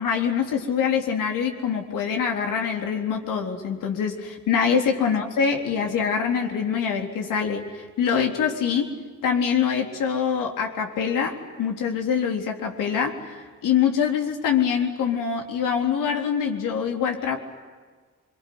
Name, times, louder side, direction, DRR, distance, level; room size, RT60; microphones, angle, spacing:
voice 1, 0.0-8.9 9.2-17.4, left 7 dB, 80° left, 3 dB, 3.9 m, -24 dB
25.0 x 24.5 x 9.6 m, 1.5 s
supercardioid pair, 60°, 32 cm